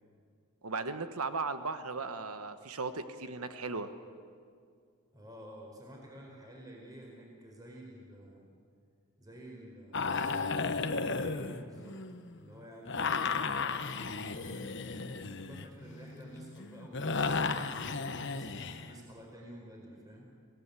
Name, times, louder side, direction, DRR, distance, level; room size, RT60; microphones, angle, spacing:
voice 1, 0.6-3.9, right 4 dB, 80° right, 9 dB, 1.4 m, -36 dB
voice 2, 5.1-8.5 9.2-12.0 12.3-18.0 18.2-20.3, right 1 dB, 15° right, -1 dB, 4.6 m, -51 dB
sound 1, 9.9-12.3 12.9-18.9, left 4 dB, 55° left, 1.1 m, -34 dB
26.5 x 18.0 x 8.4 m, 2.2 s
head